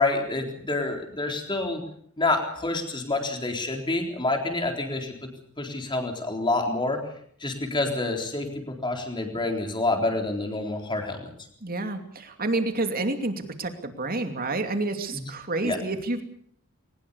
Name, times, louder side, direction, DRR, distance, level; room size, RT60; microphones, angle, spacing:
voice 1, 0.0-1.8 2.2-5.3 5.6-7.0 7.4-11.3 15.1-15.2 15.6-16.0, left 2 dB, 20° left, 3 dB, 3.9 m, -28 dB
voice 2, 11.6-16.2, right 2 dB, 45° right, 7 dB, 2.7 m, -29 dB
21.5 x 20.0 x 6.9 m, 0.64 s
head